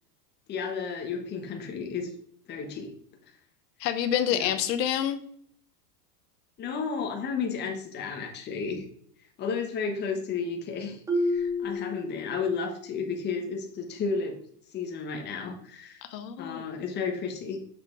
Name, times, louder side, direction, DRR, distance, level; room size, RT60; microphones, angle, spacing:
voice 1, 0.5-2.1 2.5-2.9 4.3-4.6 6.6-8.8 9.4-14.4 14.7-16.0 16.4-17.6, left 5 dB, 20° left, 3 dB, 1.1 m, -32 dB
voice 2, 3.8-5.2 16.0-16.9, left 10 dB, 80° left, 10 dB, 1.0 m, -28 dB
Marimba xylophone, 11.1-12.8, left 1 dB, 5° right, 1.2 m, -30 dB
6.8 x 5.6 x 3.7 m, 0.62 s
supercardioid pair, 155°, 49 cm